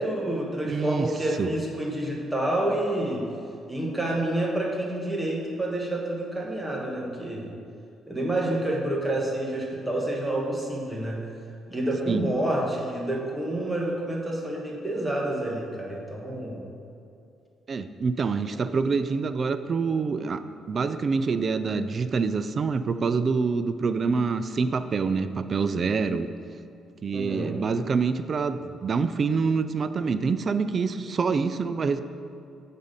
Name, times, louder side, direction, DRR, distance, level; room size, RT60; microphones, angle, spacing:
voice 1, 0.0-3.2 3.7-7.5 8.1-11.2 11.7-16.6 27.1-27.6, right 1 dB, 10° right, -2 dB, 1.3 m, -28 dB
voice 2, 0.6-1.1 1.4-1.5 12.1-12.2 17.7-20.4 20.7-26.3 27.0-32.0, right 5 dB, 45° right, 11 dB, 0.3 m, -26 dB
8.1 x 4.2 x 5.0 m, 2.5 s
cardioid pair, 90°, 0 cm